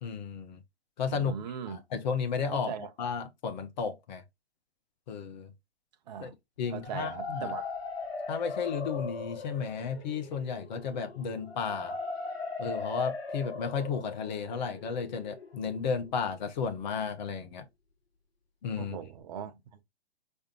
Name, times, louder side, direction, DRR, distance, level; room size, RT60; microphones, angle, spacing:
voice 1, 0.0-0.6 1.0-1.3 1.7-2.7 3.0-4.2 5.1-5.5 6.2-6.3 6.6-7.5 8.3-12.0 12.6-17.7 18.6-19.0, left 6 dB, 45° left, 1.0 m, -33 dB
voice 2, 1.1-1.8 2.5-2.9 6.1-6.3 6.7-7.7 18.8-19.5, right 8 dB, 40° right, 0.9 m, -39 dB
sound 1, 6.6-16.5, left 3 dB, 70° left, 1.2 m, -39 dB
4.9 x 3.3 x 2.9 m
figure-of-eight pair, 125°, 32 cm